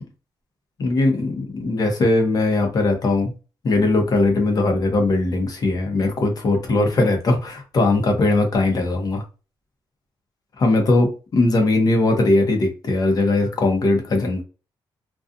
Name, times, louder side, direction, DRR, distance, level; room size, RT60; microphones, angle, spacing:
voice 1, 0.8-3.3 3.6-9.2 10.6-14.4, left 2 dB, 45° left, 3 dB, 0.8 m, -19 dB
2.5 x 2.3 x 2.5 m, 0.33 s
cardioid pair, 140°, 9 cm